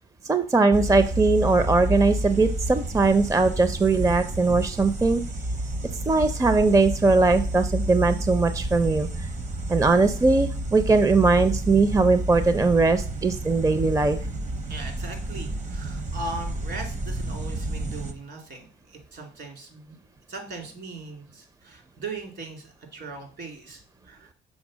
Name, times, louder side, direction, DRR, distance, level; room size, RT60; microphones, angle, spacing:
voice 1, 0.2-5.2 6.1-9.3 9.7-14.2, right 3 dB, 15° right, 11 dB, 0.5 m, -20 dB
sound 1, 0.7-18.1, right 1 dB, 40° right, 0.8 m, -30 dB
voice 2, 14.7-20.0 20.3-24.3, right 3 dB, 60° right, 3 dB, 2.6 m, -39 dB
6.3 x 4.3 x 6.2 m, 0.42 s
cardioid pair, 90°, 20 cm